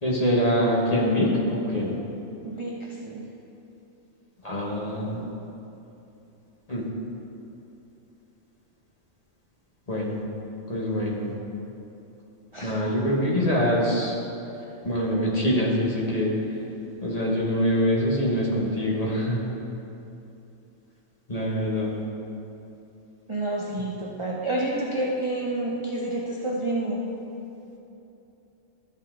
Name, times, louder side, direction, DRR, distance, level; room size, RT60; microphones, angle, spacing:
voice 1, 0.0-2.0 4.4-5.2 6.7-6.9 9.9-10.2 10.7-11.3 12.6-14.1 14.8-16.3 17.0-19.4 21.3-22.0, equal, 30° left, -5 dB, 1.4 m, -24 dB
voice 2, 2.4-3.3 12.5-12.7 23.3-27.1, right 1 dB, 35° right, -3 dB, 0.5 m, -29 dB
12.5 x 5.5 x 3.7 m, 2.9 s
omnidirectional pair, 1.4 m